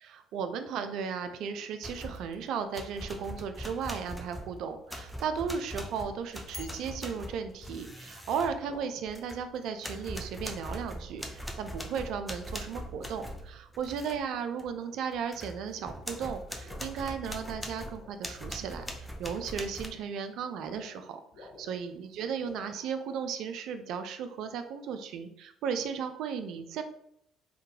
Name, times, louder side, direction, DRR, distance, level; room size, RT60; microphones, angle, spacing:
voice 1, 0.0-26.8, right 6 dB, 65° right, 8 dB, 0.3 m, -35 dB
sound 1, 1.8-2.3 2.7-9.5 9.8-14.2 14.6-14.7 15.1-19.9, equal, 5° left, 0.5 m, -41 dB
sound 2, 5.9-6.2 7.1-7.4 8.7-9.0 10.4-12.3 12.9-13.4 13.7-14.1 14.5-14.9 15.2-15.7 16.0-16.9 17.3-18.2 18.6-21.0 21.3-22.8, left 2 dB, 70° left, 1.1 m, -54 dB
3.5 x 2.2 x 2.8 m, 0.72 s
hypercardioid pair, 50°, 0 cm